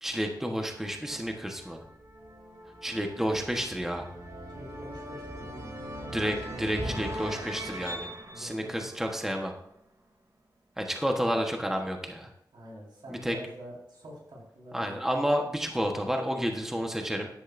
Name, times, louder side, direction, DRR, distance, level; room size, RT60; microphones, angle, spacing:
voice 1, 0.0-1.8 2.8-4.1 6.1-8.1 8.4-9.5 10.8-12.3 13.1-13.4 14.7-17.3, equal, 5° right, 2 dB, 1.2 m, -30 dB
sound 1, 0.6-9.7, right 1 dB, 45° right, 2.6 m, -40 dB
voice 2, 4.5-5.8 6.5-7.0 8.3-8.9 12.5-14.9, equal, 90° right, -3 dB, 4.6 m, -46 dB
14.0 x 10.0 x 2.6 m, 0.78 s
wide cardioid pair, 120°, 8 cm